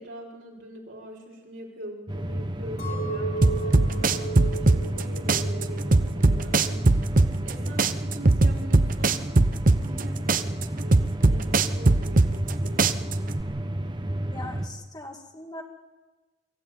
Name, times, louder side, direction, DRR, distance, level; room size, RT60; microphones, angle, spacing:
voice 1, 0.0-7.1 7.4-13.3, right 1 dB, 75° right, -2 dB, 5.4 m, -43 dB
sound 1, 2.1-14.7, right 1 dB, 20° right, 1.0 m, -31 dB
Chink clink, 2.8-7.1 7.5-8.1, right 3 dB, 50° left, 5.6 m, -36 dB
sound 2, 3.4-5.0 5.3-7.5 7.8-10.0 10.3-12.5 12.8-13.4, right 2 dB, 40° right, 0.8 m, -19 dB
voice 2, 14.3-15.6, left 2 dB, 20° left, 2 dB, 2.5 m, -40 dB
24.0 x 14.5 x 9.5 m, 1.2 s
head